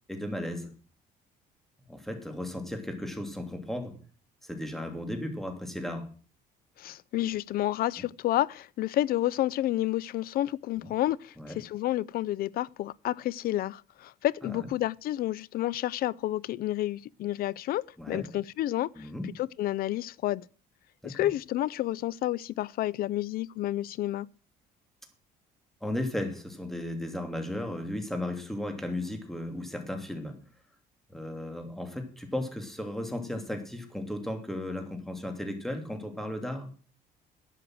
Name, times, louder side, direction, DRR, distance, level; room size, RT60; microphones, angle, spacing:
voice 1, 0.1-0.7 1.9-3.9 4.4-6.1 10.8-10.9 11.4-11.6 14.5-14.7 18.0-18.3 19.0-19.3 21.0-21.3 25.8-30.4 31.1-36.7, left 1 dB, ahead, 2.9 m, -35 dB
voice 2, 6.8-19.1 19.4-20.4 21.0-24.3, left 14 dB, 65° left, 0.5 m, -30 dB
11.5 x 7.7 x 7.7 m
cardioid pair, 110°, 17 cm